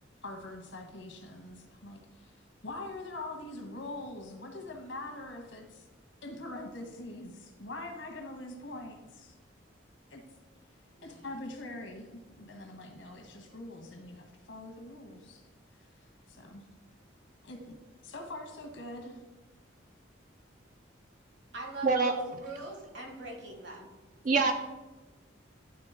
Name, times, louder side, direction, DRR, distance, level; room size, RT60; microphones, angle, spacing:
voice 1, 0.2-5.9 6.2-9.4 10.1-10.2 11.0-15.4 15.7-16.7 17.4-17.8 18.0-19.2, left 2 dB, 75° left, 3 dB, 1.3 m, -43 dB
voice 2, 10.9-11.2 21.5-23.9, right 2 dB, 65° right, 1 dB, 1.7 m, -42 dB
voice 3, 21.8-22.2 24.2-24.5, right 4 dB, 40° right, 5 dB, 0.4 m, -24 dB
11.0 x 3.9 x 3.6 m, 1.1 s
head